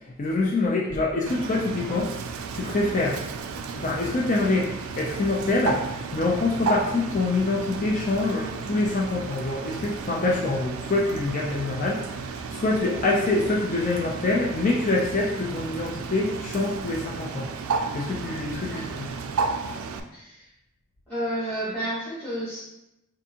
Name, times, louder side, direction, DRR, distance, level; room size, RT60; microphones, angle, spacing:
voice 1, 0.0-3.2 3.7-17.5 17.9-19.1, left 2 dB, 35° left, -2 dB, 0.4 m, -25 dB
Bird, 1.3-20.0, right 4 dB, 75° right, 0.3 m, -33 dB
voice 2, 18.7-19.0 20.1-20.5 21.1-22.6, right 1 dB, 10° left, -14 dB, 1.5 m, -31 dB
4.5 x 2.5 x 2.8 m, 0.89 s
head